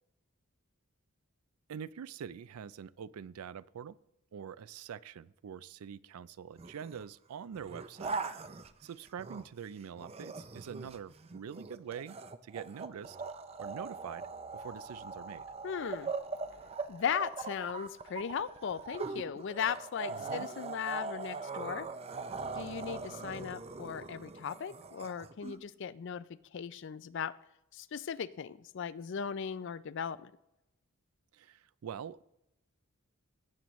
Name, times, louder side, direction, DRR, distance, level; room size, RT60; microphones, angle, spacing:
voice 1, 1.7-4.0 4.3-8.2 8.8-12.2 12.4-13.2 13.6-15.4 20.1-20.5 31.3-32.2, right 7 dB, 85° right, 19 dB, 0.4 m, -45 dB
sound 1, 6.6-7.0 7.5-9.6 10.0-25.6, right 4 dB, 30° right, 0.5 m, -41 dB
voice 2, 15.6-16.1 16.9-21.9 22.5-26.2 26.5-27.3 27.7-30.3, left 7 dB, 55° left, 17 dB, 0.4 m, -37 dB
17.0 x 7.7 x 3.1 m, 0.88 s
head